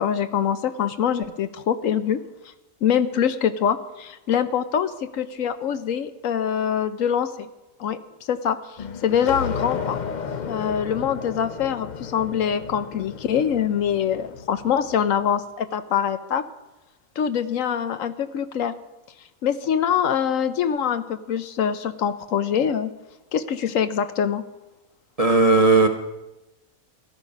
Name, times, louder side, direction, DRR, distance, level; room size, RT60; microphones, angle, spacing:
voice 1, 0.0-2.2 2.8-7.5 7.8-8.0 8.3-8.6 9.0-10.0 10.5-16.4 17.2-18.7 19.4-22.9 23.3-24.4, left 8 dB, 70° left, 11 dB, 1.0 m, -24 dB
sound 1, 8.8-15.1, left 6 dB, 50° left, 0.5 m, -33 dB
voice 2, 25.2-25.9, right 3 dB, 35° right, 5 dB, 0.7 m, -16 dB
14.5 x 13.0 x 5.3 m, 1.0 s
omnidirectional pair, 1.5 m